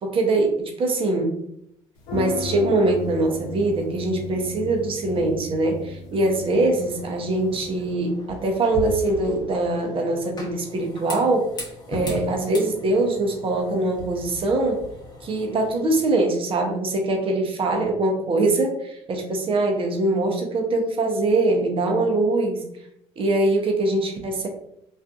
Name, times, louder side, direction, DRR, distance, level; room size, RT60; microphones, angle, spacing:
voice 1, 0.0-1.4 2.1-11.5 11.9-14.8 15.2-22.6 23.2-24.5, right 2 dB, 45° right, 3 dB, 0.7 m, -23 dB
sound 1, 2.0-7.9, left 3 dB, 80° left, 0.6 m, -35 dB
sound 2, 6.7-16.0, left 2 dB, 30° left, 0.9 m, -38 dB
2.5 x 2.5 x 2.3 m, 0.74 s
supercardioid pair, 75°, 13 cm